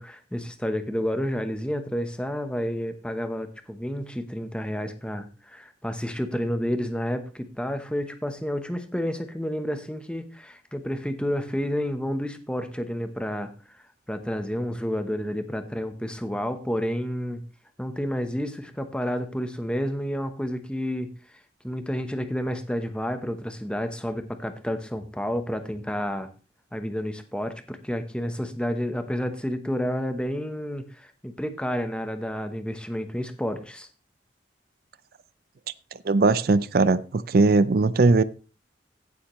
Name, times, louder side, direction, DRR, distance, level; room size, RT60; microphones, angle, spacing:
voice 1, 0.0-13.5 14.1-17.4 17.8-21.1 21.6-26.3 26.7-33.9, equal, 5° left, 1.0 m, -30 dB
voice 2, 36.0-38.2, right 3 dB, 55° right, 0.5 m, -19 dB
16.0 x 7.2 x 3.1 m
head